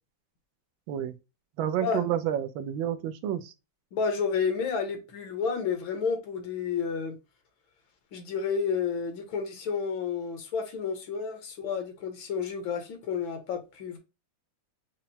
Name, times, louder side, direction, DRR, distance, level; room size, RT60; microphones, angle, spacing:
voice 1, 1.6-3.5, right 10 dB, 85° right, 1.4 m, -29 dB
voice 2, 3.9-7.2 8.1-14.0, left 6 dB, 80° left, 1.8 m, -31 dB
5.6 x 2.0 x 2.7 m
omnidirectional pair, 2.1 m